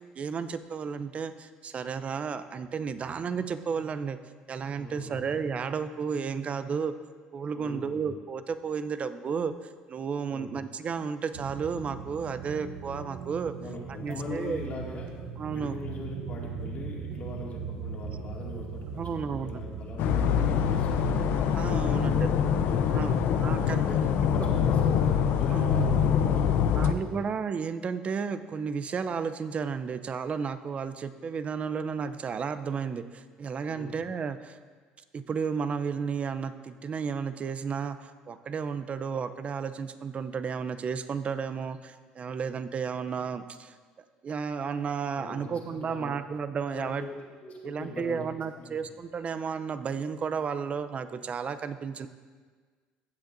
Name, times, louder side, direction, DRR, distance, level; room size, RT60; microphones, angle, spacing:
voice 1, 0.2-4.2 4.5-6.9 7.3-9.5 9.9-13.5 14.0-14.6 15.4-15.8 18.9-19.7 21.5-22.3 22.9-23.9 24.4-24.5 25.5-25.9 26.8-34.6 35.1-43.7 44.2-47.1 47.6-52.1, right 6 dB, 40° right, 12 dB, 0.5 m, -33 dB
voice 2, 4.8-5.2 7.5-8.1 10.3-10.5 13.6-15.1 15.5-21.2 21.7-23.3 23.8-27.2 33.7-33.9 45.2-46.1 46.7-48.3 48.5-48.8, left 2 dB, 45° left, -2 dB, 2.3 m, -41 dB
sound 1, 11.3-24.7, right 6 dB, 80° right, 0.7 m, -40 dB
sound 2, 20.0-26.9, left 7 dB, 70° left, 0.6 m, -24 dB
15.0 x 7.9 x 2.6 m, 1.5 s
supercardioid pair, 85°, 3 cm